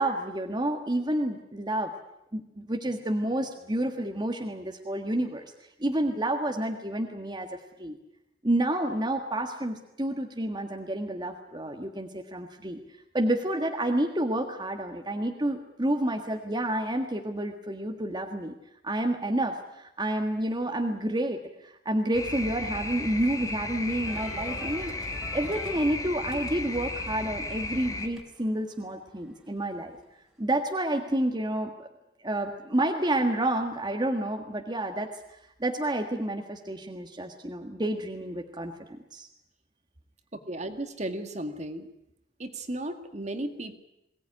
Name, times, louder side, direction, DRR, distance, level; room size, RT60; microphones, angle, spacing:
voice 1, 0.0-1.9 2.3-5.5 5.8-8.0 8.4-12.8 13.1-18.5 18.8-25.0 25.3-30.0 30.4-31.9 32.2-35.1 35.6-39.3, right 1 dB, 25° right, 3 dB, 1.7 m, -29 dB
sound 1, 22.1-28.1, left 2 dB, 20° left, 2.3 m, -35 dB
sound 2, 24.1-30.4, equal, ahead, 3.2 m, -48 dB
voice 2, 40.5-41.9 42.4-43.8, right 1 dB, 40° right, 7 dB, 2.0 m, -35 dB
22.5 x 18.0 x 9.9 m, 0.84 s
head